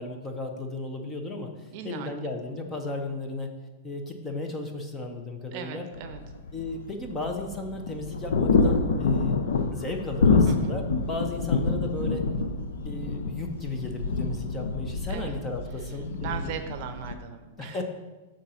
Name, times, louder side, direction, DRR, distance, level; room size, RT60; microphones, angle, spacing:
voice 1, 0.0-3.5 3.8-5.9 6.5-9.4 9.7-12.3 12.8-16.6 17.6-17.8, left 2 dB, 15° left, 4 dB, 0.7 m, -35 dB
voice 2, 1.7-2.1 5.5-6.2 10.4-10.7 15.1-15.3 16.2-17.8, right 8 dB, 45° right, 8 dB, 0.6 m, -38 dB
sound 1, 5.9-17.1, left 4 dB, 85° left, 0.6 m, -27 dB
7.3 x 3.8 x 5.6 m, 1.2 s
supercardioid pair, 160°, 0 cm